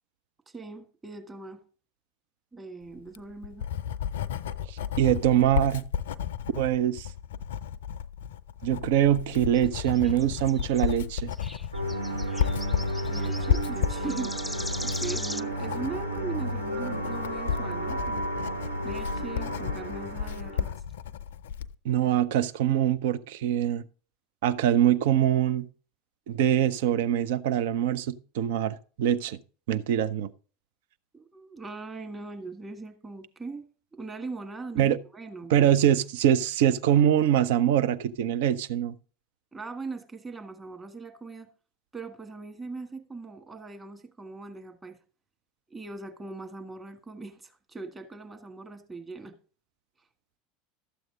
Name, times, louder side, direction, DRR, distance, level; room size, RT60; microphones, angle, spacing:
voice 1, 0.5-1.6 2.5-3.7 13.1-14.3 14.8-18.3 18.8-20.8 31.1-33.6 33.9-35.7 39.5-41.5 41.9-45.0 45.7-49.4, right 3 dB, 20° right, 1.7 m, -40 dB
Writing, 3.0-21.7, left 8 dB, 65° left, 0.4 m, -33 dB
voice 2, 4.7-5.8 6.6-7.1 8.6-11.3 21.8-23.8 24.4-25.7 26.3-29.4 29.7-30.3 34.8-35.0 35.5-39.0, right 10 dB, 60° right, 0.6 m, -24 dB
sound 1, 9.5-15.4, left 1 dB, ahead, 0.4 m, -40 dB
sound 2, 11.7-20.7, right 1 dB, 85° right, 1.2 m, -32 dB
12.5 x 7.8 x 3.7 m
figure-of-eight pair, 75°, 0 cm